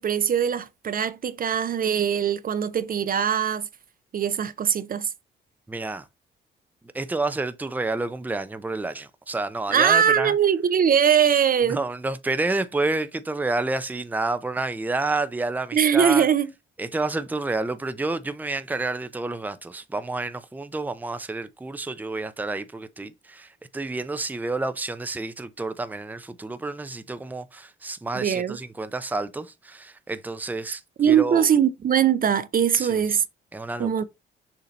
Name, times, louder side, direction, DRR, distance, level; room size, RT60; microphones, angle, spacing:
voice 1, 0.0-3.7 4.1-5.1 9.7-11.8 15.7-16.5 28.1-28.6 31.0-33.2 33.8-34.0, right 8 dB, 45° right, 0.7 m, -21 dB
voice 2, 5.7-6.1 6.9-10.3 11.6-16.3 16.8-31.5 32.8-33.0 33.5-34.0, right 2 dB, 10° right, 0.6 m, -29 dB
6.8 x 2.9 x 5.1 m
cardioid pair, 90°, 20 cm